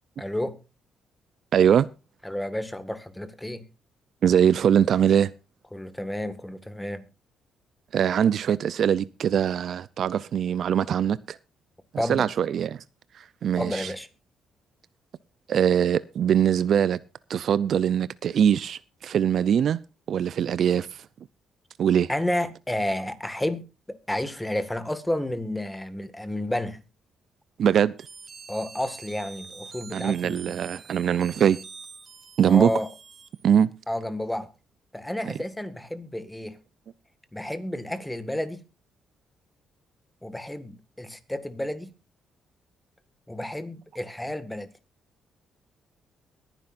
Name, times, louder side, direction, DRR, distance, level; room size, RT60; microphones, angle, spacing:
voice 1, 0.2-0.6 2.2-3.6 5.7-7.0 12.0-12.3 13.6-14.1 22.1-26.8 28.5-30.7 32.4-32.9 33.9-34.5 34.9-36.6 37.3-38.6 40.2-41.9 43.3-44.7, left 1 dB, 10° left, 1.8 m, -31 dB
voice 2, 1.5-1.9 4.2-5.3 7.9-11.4 12.1-12.8 13.2-13.9 15.5-17.0 17.3-19.8 20.1-20.9 21.8-22.1 27.6-27.9 29.9-31.6 32.4-32.7 33.4-33.7 35.3-35.4, right 8 dB, 60° right, 0.5 m, -22 dB
sound 1, 28.0-33.7, right 5 dB, 40° right, 1.4 m, -45 dB
22.5 x 10.0 x 2.6 m
cardioid pair, 90°, 0 cm